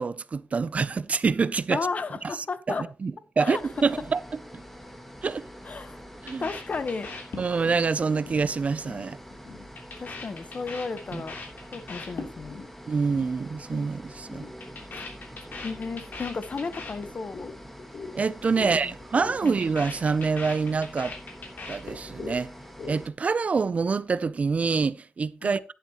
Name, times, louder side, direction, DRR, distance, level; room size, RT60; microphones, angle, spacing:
voice 1, 0.0-1.8 3.0-4.2 4.5-4.6 5.2-5.5 6.2-6.5 7.4-9.2 11.1-11.2 12.9-14.4 18.1-21.2 21.7-22.5 22.8-25.7, right 4 dB, 40° right, 0.4 m, -26 dB
voice 2, 1.7-2.9 3.4-3.6 5.6-6.0 6.4-7.1 10.0-11.4 11.7-12.6 15.6-17.5 18.6-18.9 19.4-19.6 25.4-25.6, left 4 dB, 45° left, 1.0 m, -33 dB
sound 1, 3.5-23.1, equal, 5° left, 1.5 m, -45 dB
sound 2, 6.3-7.8 8.1-8.4 8.7-9.0 9.3-12.7 12.9-13.3 13.5-13.9 14.2-17.5 17.8-18.1 18.4-18.7 19.0-22.4 22.6-23.3, left 4 dB, 60° left, 3.1 m, -40 dB
11.0 x 11.0 x 2.9 m
wide cardioid pair, 115°, 4 cm